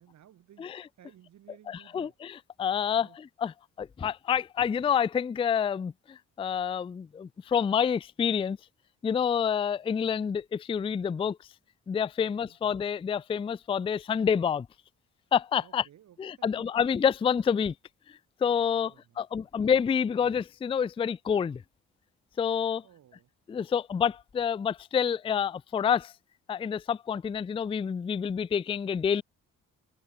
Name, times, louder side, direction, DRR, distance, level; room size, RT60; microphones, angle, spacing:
voice 1, 0.0-2.1 3.0-3.2 12.2-12.6 15.6-16.5 16.8-16.9 18.7-19.5 22.8-23.3, right 11 dB, 65° right, 2.7 m, -58 dB
voice 2, 1.7-8.6 9.0-11.4 11.9-14.7 15.3-15.8 16.2-17.7 18.4-21.6 22.4-22.8 23.5-26.1 26.5-29.2, left 7 dB, 20° left, 0.3 m, -28 dB
cardioid pair, 90°, 30 cm